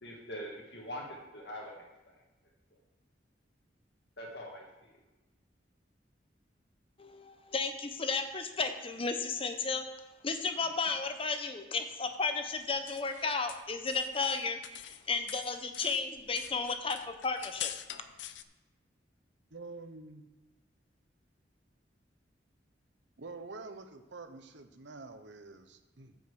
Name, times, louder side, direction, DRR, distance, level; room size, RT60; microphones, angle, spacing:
voice 1, 0.0-1.7 2.1-2.2 4.2-4.9, equal, 65° left, -1 dB, 1.8 m, -43 dB
voice 2, 7.0-9.9 10.2-17.7, left 4 dB, 30° left, 7 dB, 0.9 m, -33 dB
sound 1, 12.5-15.0 15.3-18.4, left 11 dB, 85° left, 0.6 m, -44 dB
voice 3, 19.5-20.3 23.2-26.2, right 3 dB, 85° right, 8 dB, 1.0 m, -47 dB
9.3 x 6.0 x 7.0 m, 1.1 s
head